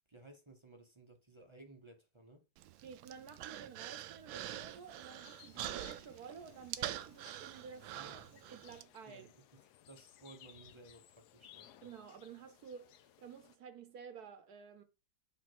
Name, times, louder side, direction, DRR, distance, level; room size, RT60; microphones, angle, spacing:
voice 1, 0.1-2.4 7.9-8.3 9.1-9.6 9.9-11.8, right 2 dB, 25° right, 0.6 m, -57 dB
Human voice, 2.6-8.8, right 13 dB, 85° right, 1.4 m, -45 dB
voice 2, 2.8-7.9 8.5-9.3 11.8-14.8, right 6 dB, 60° right, 1.2 m, -52 dB
sound 1, 4.4-13.6, left 11 dB, 70° left, 1.0 m, -61 dB
8.5 x 3.3 x 6.1 m
omnidirectional pair, 2.1 m